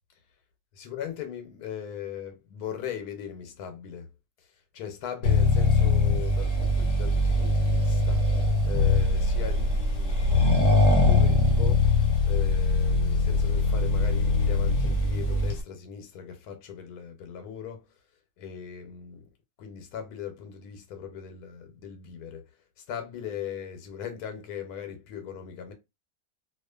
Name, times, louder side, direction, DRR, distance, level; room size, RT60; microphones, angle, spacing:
voice 1, 0.7-4.1 4.4-4.5 4.7-8.3 8.6-12.0 12.2-17.9 18.4-19.3 19.6-22.5 22.8-25.7, left 8 dB, 85° left, 1.1 m, -39 dB
Accelerating revving vroom, 5.2-15.6, left 3 dB, 65° left, 0.9 m, -22 dB
2.4 x 2.4 x 2.2 m
omnidirectional pair, 1.6 m